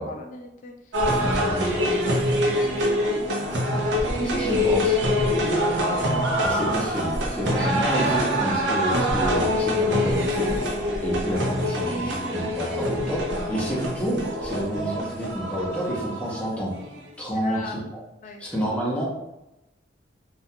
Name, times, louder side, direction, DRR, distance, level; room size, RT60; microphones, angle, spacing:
voice 1, 0.1-4.7 5.2-6.6 7.3-8.2 17.3-17.8 18.2-18.4, left 2 dB, 45° left, 3 dB, 0.3 m, -41 dB
sound 1, 0.9-17.0, equal, 75° right, 0.5 m, -25 dB
voice 2, 1.2-1.9 4.2-5.0 6.4-10.6 11.0-16.7 17.2-17.6 18.4-19.0, equal, 5° left, -6 dB, 0.6 m, -29 dB
2.3 x 2.2 x 2.7 m, 0.93 s
head